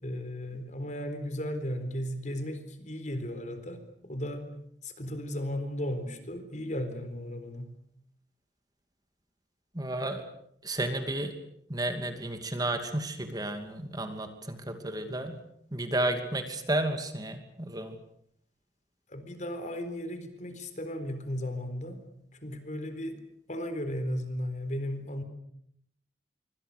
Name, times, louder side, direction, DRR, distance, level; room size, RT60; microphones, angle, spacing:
voice 1, 0.0-4.5 4.8-7.7 19.1-22.0 22.4-23.2 23.5-25.2, equal, 45° left, 9 dB, 4.1 m, -35 dB
voice 2, 9.7-10.2 10.6-11.3 11.7-15.4 15.7-18.0, right 1 dB, 20° right, 7 dB, 2.6 m, -32 dB
26.5 x 25.0 x 6.8 m, 0.70 s
head